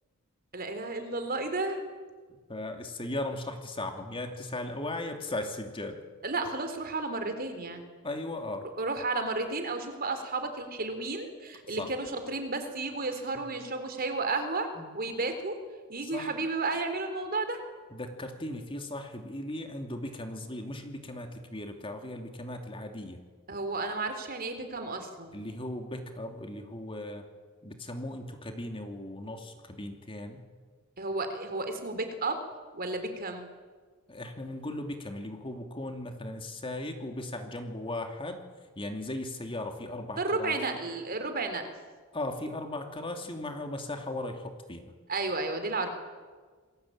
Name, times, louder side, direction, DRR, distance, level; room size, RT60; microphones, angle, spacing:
voice 1, 0.5-1.8 6.2-7.8 8.8-14.7 14.9-15.5 15.9-17.6 23.5-25.4 31.0-32.4 32.7-33.5 40.2-41.7 45.1-45.9, right 3 dB, 45° right, 7 dB, 3.9 m, -32 dB
voice 2, 2.5-6.0 8.0-8.7 11.7-11.9 14.8-14.9 16.0-16.3 17.9-23.2 25.3-27.3 27.6-30.4 34.1-38.4 38.8-40.6 42.1-44.9, left 1 dB, 25° left, 5 dB, 2.7 m, -37 dB
28.5 x 21.0 x 8.8 m, 1.5 s
head